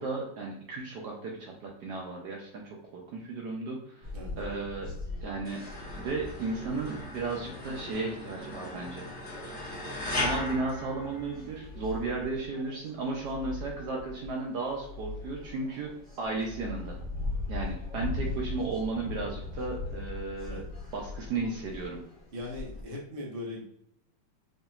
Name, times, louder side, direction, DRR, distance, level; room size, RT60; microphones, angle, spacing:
voice 1, 0.0-4.9 5.2-5.6 6.0-9.1 10.2-17.0 17.5-20.6 20.9-22.0, right 3 dB, 70° right, -1 dB, 1.1 m, -34 dB
sound 1, 4.0-22.8, left 3 dB, 5° right, 0.7 m, -41 dB
sound 2, 5.4-11.7, left 1 dB, 30° left, 1.4 m, -37 dB
sound 3, 9.8-10.9 11.4-12.5 13.0-14.1 14.6-15.7 16.2-17.2 17.8-18.9, left 3 dB, 60° left, 1.8 m, -44 dB
voice 2, 22.3-23.6, left 1 dB, 35° right, -2 dB, 1.0 m, -39 dB
5.1 x 2.8 x 2.4 m, 0.72 s
omnidirectional pair, 2.1 m